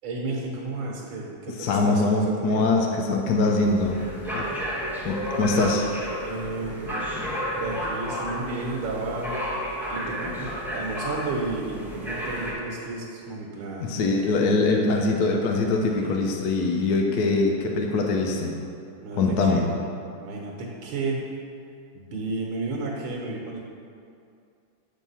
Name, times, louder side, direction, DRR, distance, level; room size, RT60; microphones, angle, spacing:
voice 1, 0.0-2.7 6.2-7.1 7.6-9.4 9.9-14.0 16.0-16.1 17.2-17.4 19.0-19.7 20.2-21.2 21.9-23.6, right 3 dB, 70° right, -3 dB, 1.8 m, -32 dB
voice 2, 1.6-4.0 4.3-4.4 5.0-5.8 13.8-18.5 19.2-19.6, left 3 dB, 70° left, 1 dB, 0.9 m, -23 dB
sound 1, 3.6-12.5, equal, ahead, 0.5 m, -32 dB
7.1 x 4.6 x 5.6 m, 2.4 s
omnidirectional pair, 2.4 m